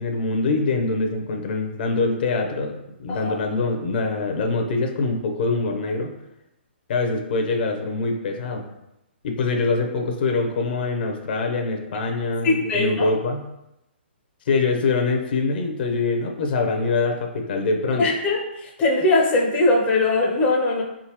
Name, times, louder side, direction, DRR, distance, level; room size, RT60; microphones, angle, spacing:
voice 1, 0.0-6.1 6.9-8.7 9.2-13.4 14.5-18.0, left 3 dB, 55° left, 3 dB, 0.8 m, -24 dB
voice 2, 12.4-13.1 18.0-20.8, left 2 dB, 20° left, -2 dB, 0.6 m, -21 dB
4.0 x 3.7 x 3.0 m, 0.88 s
hypercardioid pair, 145°, 6 cm